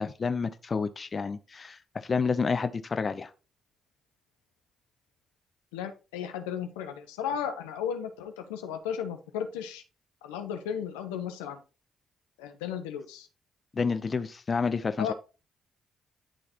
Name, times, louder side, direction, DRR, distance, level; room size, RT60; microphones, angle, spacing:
voice 1, 0.0-3.3 13.7-15.1, left 5 dB, 45° left, 0.7 m, -29 dB
voice 2, 5.7-9.8 10.2-11.6 12.4-13.3 15.0-15.1, left 8 dB, 90° left, 0.8 m, -35 dB
11.0 x 3.9 x 3.0 m
hypercardioid pair, 45°, 0 cm